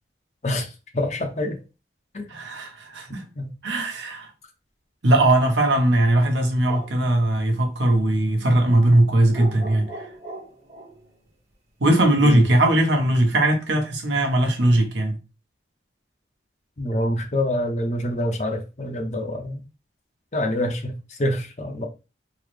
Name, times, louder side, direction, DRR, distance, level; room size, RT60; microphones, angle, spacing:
voice 1, 0.4-1.6 2.1-2.3 3.4-3.5 12.2-12.4 16.8-19.6 20.3-21.9, left 1 dB, 40° left, 0.6 m, -26 dB
voice 2, 2.3-3.2 3.6-4.3 5.0-10.0 11.8-15.2, right 1 dB, 90° right, 1.0 m, -19 dB
sound 1, 6.4-7.0 9.3-11.1, right 1 dB, 35° right, 1.0 m, -39 dB
3.8 x 2.0 x 3.2 m
head